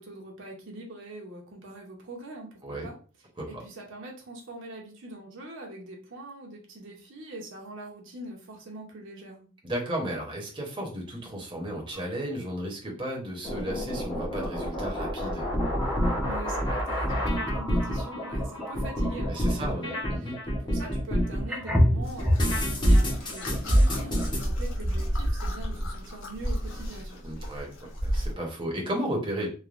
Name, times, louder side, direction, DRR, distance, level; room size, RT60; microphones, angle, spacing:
voice 1, 0.0-3.0 3.5-9.5 16.2-27.4, right 1 dB, 65° right, 0 dB, 0.7 m, -43 dB
voice 2, 9.6-15.5 19.3-20.3 27.2-29.5, right 1 dB, 25° right, -2 dB, 0.7 m, -34 dB
sound 1, 11.9-12.0 12.4-12.6 14.4-14.6 15.4-19.7 20.9-21.0 21.5-22.6, equal, 5° right, 0.4 m, -30 dB
sound 2, 13.4-21.4 21.7-24.4, equal, 25° left, 0.7 m, -26 dB
sound 3, 22.0-28.3, equal, 65° left, 0.8 m, -32 dB
3.2 x 2.2 x 2.4 m, 0.37 s
head